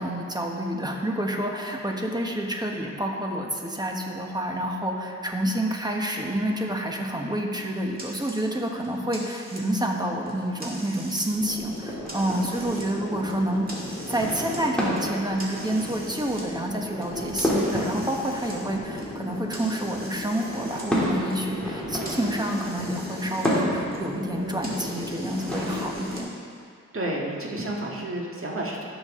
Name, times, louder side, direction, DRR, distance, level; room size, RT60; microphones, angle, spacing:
voice 1, 0.0-13.6 14.1-26.3, right 1 dB, 15° right, 1 dB, 1.2 m, -28 dB
sound 1, 8.0-8.4 8.8-9.9 10.2-11.3 11.6-12.9 13.3-14.6 14.9-16.4 17.0-20.9 21.2-23.5 23.8-26.2, right 1 dB, 30° right, 2.3 m, -43 dB
sound 2, 11.3-26.2, equal, 5° left, 2.8 m, -31 dB
voice 2, 26.9-28.8, right 1 dB, 45° right, -2 dB, 1.7 m, -30 dB
16.5 x 6.3 x 3.7 m, 2.3 s
wide cardioid pair, 100°, 30 cm